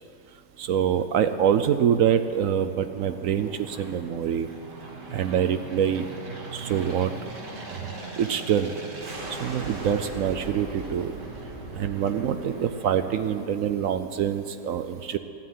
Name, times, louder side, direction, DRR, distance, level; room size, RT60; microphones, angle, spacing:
voice 1, 0.6-4.5 5.1-6.1 6.5-7.1 7.7-7.8 8.2-8.7 9.3-11.1 11.7-15.2, right 9 dB, 65° right, 10 dB, 0.8 m, -25 dB
Aircraft, 1.4-14.0, right 2 dB, 85° right, 2.8 m, -40 dB
15.0 x 9.7 x 9.3 m, 2.7 s
omnidirectional pair, 1.8 m